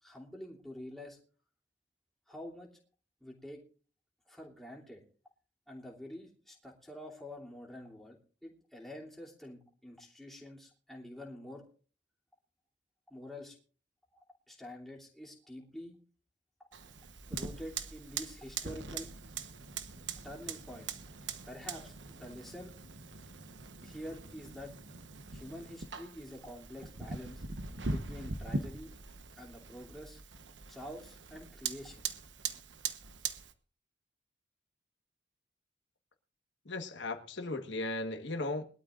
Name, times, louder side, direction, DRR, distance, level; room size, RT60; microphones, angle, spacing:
voice 1, 0.0-1.2 2.3-2.7 3.2-3.6 4.3-5.0 5.7-8.2 8.4-11.6 13.1-13.6 14.1-15.9 17.3-19.1 20.2-21.0 21.5-22.7 23.8-24.7 25.3-27.4 27.9-28.9 29.4-30.2 30.7-32.1, left 1 dB, ahead, 2.9 m, -47 dB
Fire, 16.7-33.5, right 4 dB, 90° right, 1.1 m, -42 dB
voice 2, 36.6-38.6, left 2 dB, 85° left, 1.5 m, -36 dB
22.0 x 12.5 x 2.5 m
head